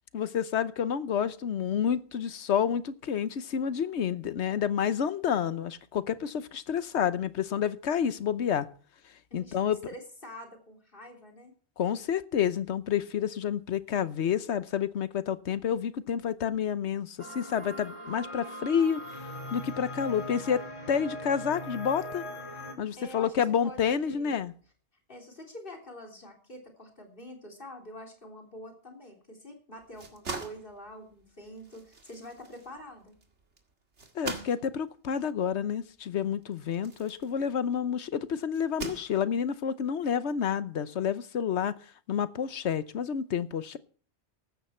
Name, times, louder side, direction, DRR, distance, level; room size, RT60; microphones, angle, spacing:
voice 1, 0.1-8.7 9.3-9.8 11.8-19.0 19.5-20.6 20.9-22.2 22.8-24.5 34.1-41.7 42.1-43.8, left 8 dB, 75° left, 1.1 m, -29 dB
voice 2, 9.3-11.5 23.0-23.3 23.6-24.4 25.1-33.2, equal, 50° left, 3.7 m, -46 dB
sound 1, 17.2-22.7, left 1 dB, 25° left, 2.9 m, -40 dB
sound 2, 29.8-37.9 38.5-39.6, right 4 dB, 90° right, 2.3 m, -43 dB
15.0 x 12.5 x 4.4 m
omnidirectional pair, 1.2 m